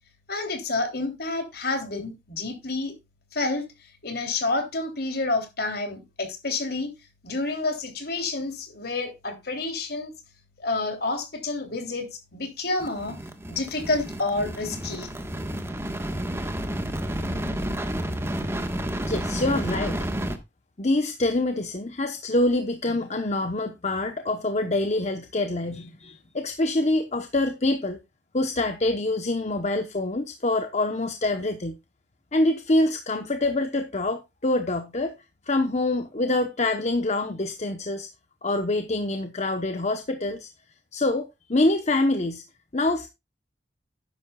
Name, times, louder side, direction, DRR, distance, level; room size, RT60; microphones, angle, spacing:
voice 1, 0.3-2.9 3.3-3.6 4.0-6.9 7.2-10.1 10.6-13.2 13.5-15.1, left 3 dB, 60° left, 3.3 m, -29 dB
sound 1, 12.8-20.4, right 1 dB, 15° right, 1.4 m, -30 dB
voice 2, 19.0-20.0 20.8-28.0 28.3-31.7 32.3-35.1 35.5-38.1 38.4-40.5 40.9-42.4 42.7-43.1, left 2 dB, 40° left, 1.0 m, -25 dB
12.5 x 10.5 x 2.4 m
head